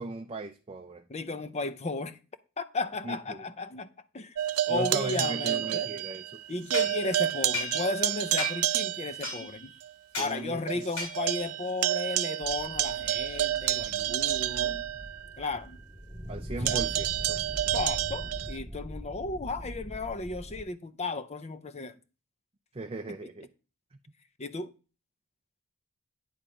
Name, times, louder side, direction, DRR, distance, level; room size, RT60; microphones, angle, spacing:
voice 1, 0.0-1.0 3.0-3.4 4.7-6.4 10.2-10.8 16.3-17.4 22.7-23.5, right 2 dB, 25° right, 0.5 m, -37 dB
voice 2, 1.1-2.2 2.6-3.9 4.1-4.4 4.7-6.0 6.5-9.7 10.2-14.8 15.4-15.8 16.6-16.9 17.7-21.9 24.4-24.7, left 3 dB, 30° left, 0.6 m, -34 dB
sound 1, 4.4-6.4 6.7-9.3 9.8-9.9 10.3-10.4 10.7-15.5 16.7-18.6, right 12 dB, 80° right, 0.5 m, -30 dB
sound 2, 6.7-8.1 8.4-8.8 9.2-9.7 10.1-10.4 11.0-11.5, left 1 dB, 75° left, 5.4 m, -36 dB
sound 3, 12.4-20.6, equal, 5° right, 2.2 m, -42 dB
10.0 x 3.6 x 6.9 m
head